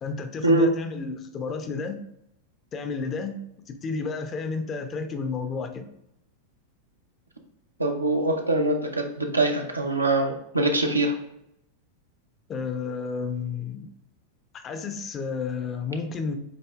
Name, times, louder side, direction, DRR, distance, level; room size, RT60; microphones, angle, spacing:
voice 1, 0.0-2.0 2.7-3.4 3.7-5.9 12.5-13.9 14.5-16.4, left 4 dB, 25° left, 7 dB, 0.5 m, -31 dB
voice 2, 7.8-11.1, right 2 dB, 80° right, 3 dB, 0.6 m, -23 dB
7.5 x 2.7 x 2.3 m, 0.79 s
figure-of-eight pair, 90°, 0 cm